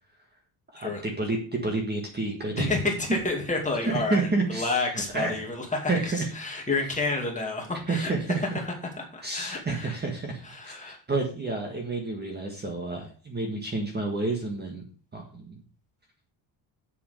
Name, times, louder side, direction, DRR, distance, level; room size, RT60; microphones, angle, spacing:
voice 1, 0.7-2.7 3.9-4.9 5.1-5.4 5.9-6.3 7.9-8.6 9.2-14.8 15.1-15.6, right 3 dB, 20° right, 2 dB, 1.7 m, -30 dB
voice 2, 2.6-5.9 6.3-8.1 8.6-10.0 10.4-11.0, left 3 dB, 15° left, 0 dB, 2.4 m, -30 dB
8.1 x 6.9 x 6.7 m, 0.40 s
cardioid pair, 175°, 48 cm